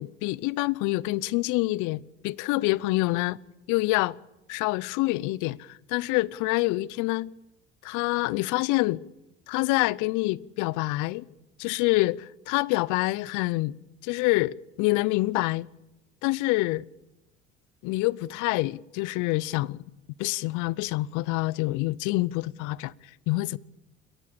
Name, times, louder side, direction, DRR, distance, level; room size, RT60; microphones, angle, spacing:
voice 1, 0.0-3.4 3.7-4.2 4.5-7.3 7.8-9.0 9.5-11.2 11.6-13.8 14.0-15.7 16.2-16.9 17.8-19.8 20.2-22.9 23.3-23.6, left 20 dB, 70° left, 0.8 m, -26 dB
29.5 x 14.5 x 8.5 m
hypercardioid pair, 60°, 31 cm